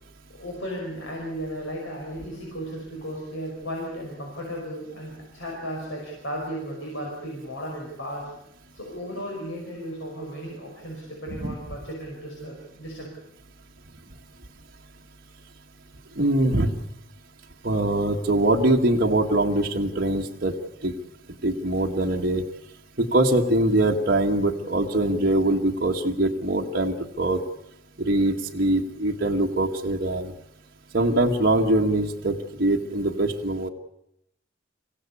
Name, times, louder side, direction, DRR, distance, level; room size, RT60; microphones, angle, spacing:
voice 1, 0.3-8.3 8.7-13.1, equal, 80° left, -2 dB, 5.3 m, -35 dB
voice 2, 16.2-16.7 17.6-20.5 20.8-20.9 21.4-22.4 23.0-27.4 28.0-30.3 30.9-33.7, right 1 dB, 50° right, -1 dB, 1.5 m, -23 dB
24.5 x 16.0 x 8.4 m, 0.78 s
head